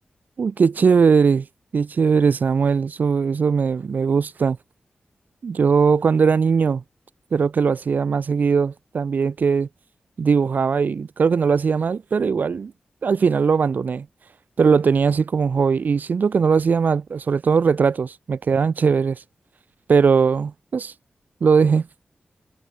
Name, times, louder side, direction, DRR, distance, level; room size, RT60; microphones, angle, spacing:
voice 1, 0.4-1.5 1.7-4.6 5.4-6.8 7.3-9.7 10.2-12.7 13.0-14.0 14.6-19.2 19.9-20.9 21.4-21.9, right 5 dB, 70° right, 1.7 m, -19 dB
cardioid pair, 70°, 3 cm